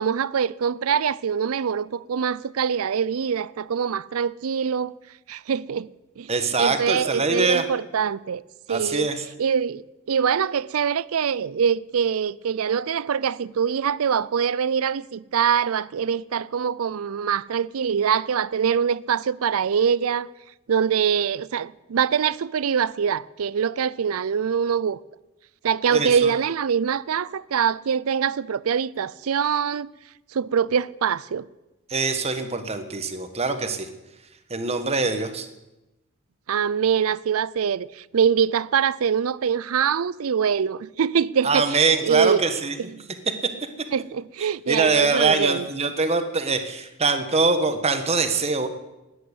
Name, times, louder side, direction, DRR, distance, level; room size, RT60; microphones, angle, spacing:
voice 1, 0.0-4.9 5.3-5.9 6.2-6.3 6.6-8.4 8.7-9.1 9.4-20.3 20.7-25.0 25.6-29.9 30.3-31.5 36.5-42.4 43.9-45.7, right 7 dB, 75° right, 0.5 m, -24 dB
voice 2, 6.3-7.6 8.7-9.3 25.9-26.3 31.9-33.9 34.5-35.5 41.4-42.8 43.3-43.4 44.7-48.7, right 4 dB, 30° right, 1.3 m, -23 dB
13.0 x 9.6 x 8.2 m
head